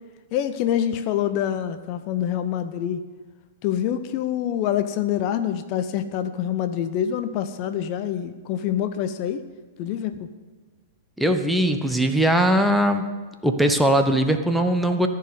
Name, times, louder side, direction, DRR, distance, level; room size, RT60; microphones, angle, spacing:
voice 1, 0.3-3.0 3.6-9.4 9.8-10.3, left 10 dB, 40° left, 10 dB, 0.6 m, -26 dB
voice 2, 11.2-13.1 13.4-15.1, right 1 dB, ahead, 6 dB, 0.9 m, -20 dB
14.0 x 4.7 x 7.9 m, 1.4 s
figure-of-eight pair, 100°, 0 cm